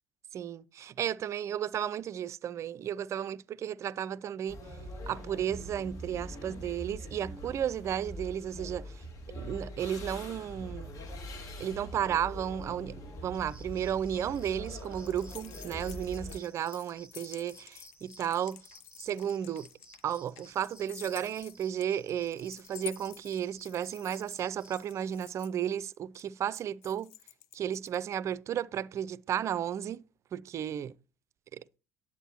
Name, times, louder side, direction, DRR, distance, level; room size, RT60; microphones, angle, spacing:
voice 1, 0.3-4.6 5.1-9.0 9.3-10.9 11.6-18.6 19.0-19.7 20.0-27.1 27.5-30.0 30.3-30.9 31.5-31.6, right 9 dB, 40° right, 0.4 m, -33 dB
sound 1, 4.5-16.4, equal, 50° left, 2.2 m, -43 dB
sound 2, 13.3-25.5, right 2 dB, 15° right, 1.4 m, -57 dB
sound 3, 14.1-28.1, left 12 dB, 65° left, 0.7 m, -50 dB
9.9 x 8.4 x 2.9 m
figure-of-eight pair, 60°, 7 cm